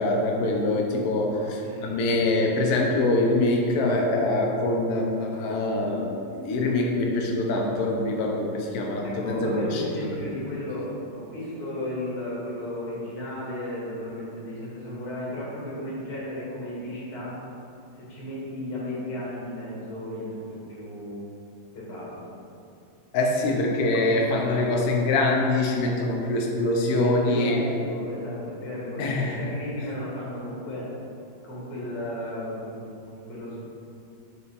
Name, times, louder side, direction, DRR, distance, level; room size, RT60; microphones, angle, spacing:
voice 1, 0.0-6.1 6.4-10.1 23.1-27.6 29.0-29.4, left 2 dB, 65° left, 0 dB, 1.0 m, -24 dB
voice 2, 1.3-1.9 9.0-17.4 17.9-21.3 21.7-22.2 27.0-30.9 31.4-32.8 33.1-33.6, left 1 dB, 90° left, -7 dB, 2.6 m, -34 dB
6.8 x 3.5 x 4.1 m, 2.6 s
omnidirectional pair, 2.3 m